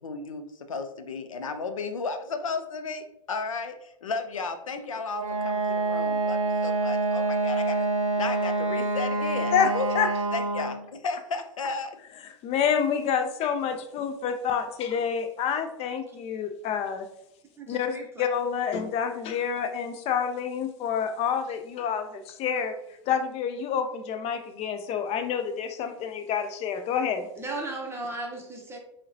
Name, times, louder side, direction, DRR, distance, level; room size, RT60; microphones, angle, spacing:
voice 1, 0.0-7.9 8.1-9.9 10.3-12.0, left 4 dB, 90° left, 8 dB, 0.4 m, -34 dB
Wind instrument woodwind instrument, 5.1-10.8, right 3 dB, 90° right, 0.5 m, -27 dB
voice 2, 9.5-10.1 12.4-17.1 17.7-22.7 23.1-27.3, left 7 dB, 40° left, 8 dB, 0.5 m, -28 dB
voice 3, 17.6-18.3 27.4-28.8, right 2 dB, 15° right, 1 dB, 0.7 m, -36 dB
4.7 x 2.2 x 2.7 m, 0.78 s
hypercardioid pair, 95°, 17 cm